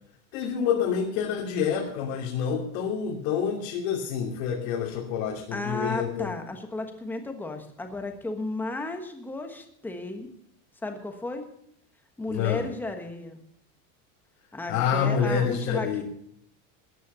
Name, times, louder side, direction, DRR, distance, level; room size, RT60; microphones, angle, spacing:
voice 1, 0.3-6.3 12.3-12.6 14.7-16.0, left 7 dB, 65° left, -2 dB, 3.0 m, -27 dB
voice 2, 5.5-10.3 10.8-11.5 12.2-13.4 14.5-16.0, left 2 dB, 5° left, 5 dB, 1.3 m, -34 dB
14.0 x 10.0 x 6.9 m, 0.71 s
cardioid pair, 175°, 40 cm